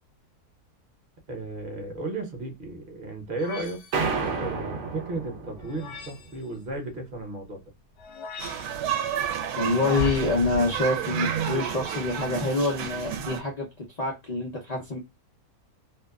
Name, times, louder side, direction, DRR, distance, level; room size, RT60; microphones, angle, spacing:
voice 1, 1.3-3.8 4.4-7.7, right 2 dB, 40° right, 3 dB, 0.9 m, -34 dB
sound 1, 3.4-4.2 5.6-6.4 8.0-8.9 9.7-10.2, left 7 dB, 80° left, 1.1 m, -41 dB
sound 2, 3.9-6.3, right 4 dB, 65° right, 0.8 m, -31 dB
sound 3, 8.4-13.4, right 7 dB, 80° right, 1.1 m, -30 dB
voice 2, 9.6-13.7 14.0-15.0, left 2 dB, 60° left, -1 dB, 0.4 m, -26 dB
2.8 x 2.2 x 2.2 m, 0.22 s
omnidirectional pair, 1.7 m